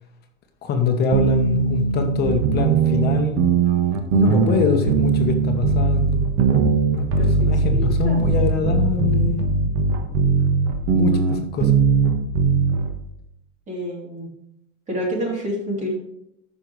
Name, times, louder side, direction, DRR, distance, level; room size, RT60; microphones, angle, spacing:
voice 1, 0.6-3.4 3.8-6.3 7.0-9.5 10.9-11.8, left 4 dB, 30° left, 5 dB, 1.2 m, -24 dB
sound 1, 1.1-12.9, right 4 dB, 45° right, 1.4 m, -19 dB
voice 2, 7.2-8.4 13.7-14.3 14.9-16.0, equal, 20° right, -2 dB, 3.3 m, -28 dB
14.0 x 6.2 x 3.3 m, 0.78 s
supercardioid pair, 160°, 33 cm